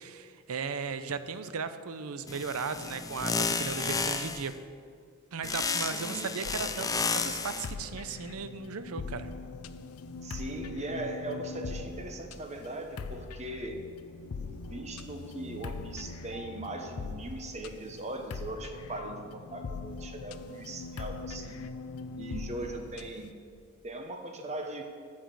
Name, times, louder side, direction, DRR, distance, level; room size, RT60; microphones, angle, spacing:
voice 1, 0.0-4.5 5.3-9.3, right 5 dB, 70° right, 11 dB, 0.6 m, -36 dB
sound 1, 2.3-4.5 5.4-7.7, left 4 dB, 15° left, 0.4 m, -32 dB
voice 2, 5.7-6.3 6.6-6.7 10.2-13.8 14.4-21.6 22.2-23.3 23.8-24.8, right 2 dB, 30° right, 4 dB, 1.0 m, -39 dB
sound 2, 6.4-23.3, left 4 dB, 75° left, 0.5 m, -42 dB
8.6 x 7.2 x 7.7 m, 2.2 s
head